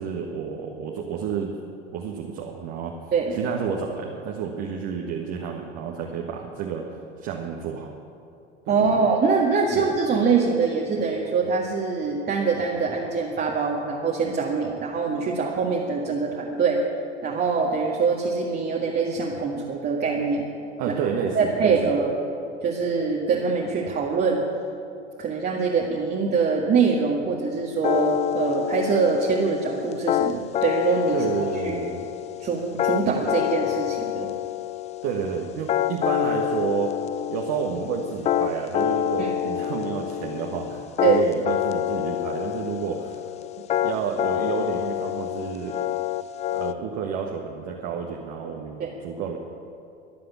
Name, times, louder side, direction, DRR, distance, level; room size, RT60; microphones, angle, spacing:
voice 1, 0.0-1.5 1.9-2.9 3.3-7.9 8.7-9.0 9.7-9.9 20.8-21.9 31.1-32.1 35.0-36.9 37.3-43.2 43.8-45.8 46.5-49.4, right 7 dB, 45° right, 0 dB, 1.7 m, -30 dB
voice 2, 8.7-16.8 17.2-20.4 21.3-22.1 22.6-24.4 25.2-31.2 31.6-31.8 32.4-34.3 39.2-39.3 41.0-41.2 48.8-48.9, right 5 dB, 30° right, -2 dB, 1.9 m, -24 dB
sound 1, 27.8-46.7, left 11 dB, 20° left, 0.4 m, -27 dB
23.0 x 7.7 x 7.1 m, 2.6 s
figure-of-eight pair, 80°, 34 cm